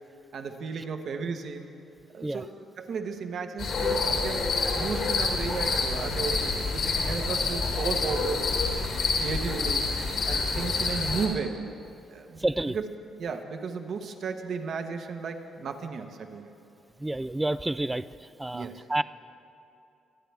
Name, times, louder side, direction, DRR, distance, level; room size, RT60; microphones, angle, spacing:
voice 1, 0.3-1.7 2.1-4.5 4.7-8.5 9.2-9.9 10.3-11.6 12.1-12.9 13.2-16.5 18.5-18.8, right 5 dB, 60° right, 5 dB, 1.1 m, -34 dB
sound 1, 3.6-11.3, left 4 dB, 65° left, 2.1 m, -27 dB
voice 2, 12.4-12.8 17.0-18.1 18.4-19.0, right 2 dB, 10° right, 16 dB, 0.3 m, -29 dB
23.5 x 9.2 x 3.4 m, 2.7 s
cardioid pair, 90°, 0 cm